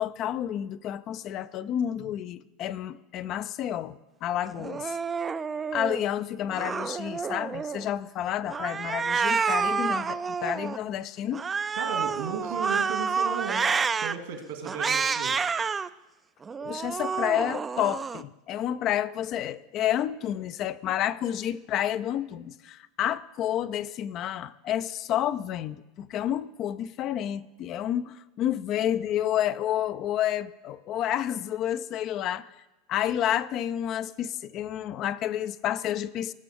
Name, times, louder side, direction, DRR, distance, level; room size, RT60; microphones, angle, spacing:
voice 1, 0.0-5.0 5.7-11.5 16.6-32.5 32.9-36.3, left 11 dB, 50° left, 14 dB, 0.4 m, -30 dB
Cat, 4.6-6.0 6.5-7.9 8.5-10.8 11.3-14.1 14.7-15.9 16.4-18.2, right 5 dB, 25° right, 0.3 m, -29 dB
voice 2, 11.8-13.6 14.0-15.3, right 6 dB, 75° right, 4 dB, 2.1 m, -35 dB
19.0 x 6.7 x 3.6 m, 1.1 s
hypercardioid pair, 85°, 0 cm